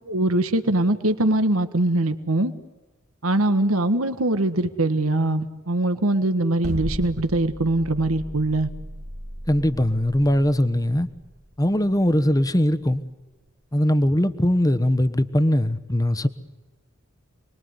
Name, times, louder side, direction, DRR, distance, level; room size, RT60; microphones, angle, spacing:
voice 1, 0.1-2.5 3.2-8.7, right 1 dB, 75° right, 1.6 m, -22 dB
sound 1, 6.6-12.8, equal, 50° right, 2.4 m, -36 dB
voice 2, 9.5-11.1 11.6-13.0 13.7-16.3, left 1 dB, 15° left, 1.2 m, -21 dB
29.0 x 21.5 x 9.7 m
head